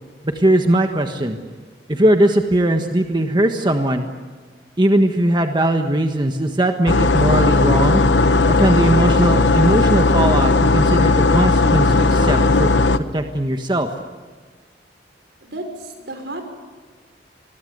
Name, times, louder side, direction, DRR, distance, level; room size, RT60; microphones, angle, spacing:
voice 1, 0.2-1.4 1.9-4.1 4.8-8.0 8.5-12.7 13.1-13.9, right 1 dB, 25° right, 5 dB, 1.4 m, -19 dB
sound 1, 6.9-13.0, left 3 dB, 90° left, 1.2 m, -16 dB
voice 2, 15.4-16.4, right 1 dB, 80° right, 6 dB, 5.6 m, -32 dB
26.5 x 22.0 x 8.1 m, 1.5 s
head